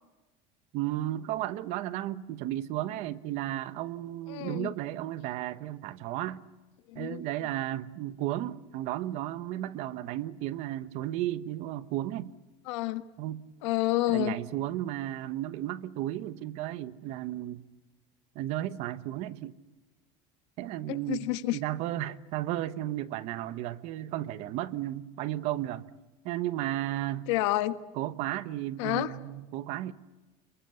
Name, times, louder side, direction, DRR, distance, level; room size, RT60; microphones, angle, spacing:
voice 1, 0.7-6.4 6.9-12.3 13.2-13.4 14.1-17.6 18.3-19.5 20.6-25.8 26.2-27.3 28.0-29.9, right 14 dB, 45° right, 1.1 m, -34 dB
voice 2, 4.3-4.7 6.9-7.2 12.7-13.0 13.6-14.3 20.9-21.6 27.3-27.8 28.8-29.1, left 17 dB, 85° left, 1.5 m, -29 dB
27.0 x 23.0 x 8.2 m
cardioid pair, 180°, 15 cm